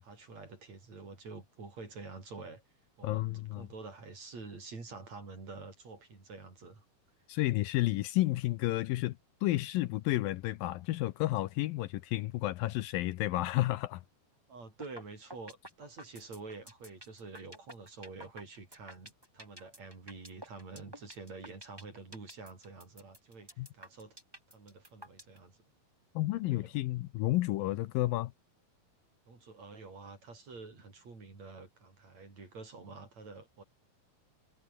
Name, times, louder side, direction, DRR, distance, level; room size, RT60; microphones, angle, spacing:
voice 1, 0.0-2.6 3.0-3.3 3.6-6.9 14.5-24.2 24.5-25.6 26.3-26.7 29.3-33.6, right 3 dB, 45° right, 7.1 m, -48 dB
voice 2, 3.0-3.7 7.3-14.0 23.6-23.7 26.2-28.3, left 17 dB, 75° left, 2.4 m, -31 dB
sound 1, 14.8-15.0 15.3-25.4, equal, 5° right, 7.4 m, -50 dB
omnidirectional pair, 4.3 m